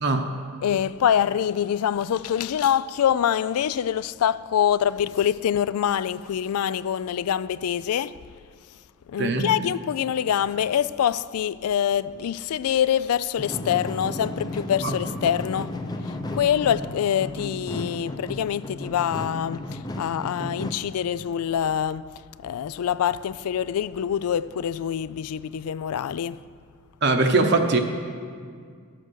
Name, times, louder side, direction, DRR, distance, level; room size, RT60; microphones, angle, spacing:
voice 1, 0.6-8.2 9.1-15.8 16.0-22.1 22.4-26.4, left 9 dB, 85° left, 0.3 m, -25 dB
sound 1, 13.4-20.7, left 1 dB, 20° left, 0.6 m, -34 dB
voice 2, 27.0-27.8, right 3 dB, 50° right, 0.8 m, -21 dB
12.5 x 7.8 x 6.3 m
head